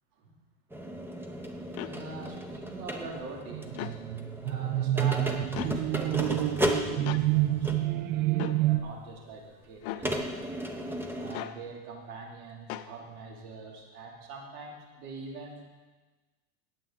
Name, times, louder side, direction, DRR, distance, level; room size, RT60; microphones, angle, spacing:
sound 1, 0.7-8.0 8.8-8.9 10.0-11.3, equal, 5° right, 0.8 m, -35 dB
sound 2, 1.8-1.9 3.7-4.0 5.6-5.7 7.1-7.3 8.4-8.6 9.8-10.1 11.3-11.6 12.7-12.9, left 13 dB, 60° left, 0.7 m, -37 dB
voice 1, 1.8-3.9 4.4-10.4 11.1-15.6, right 4 dB, 85° right, 0 dB, 2.7 m, -43 dB
sound 3, 3.5-8.8, right 14 dB, 55° right, 0.7 m, -28 dB
18.0 x 7.7 x 3.8 m, 1.3 s
supercardioid pair, 140°, 43 cm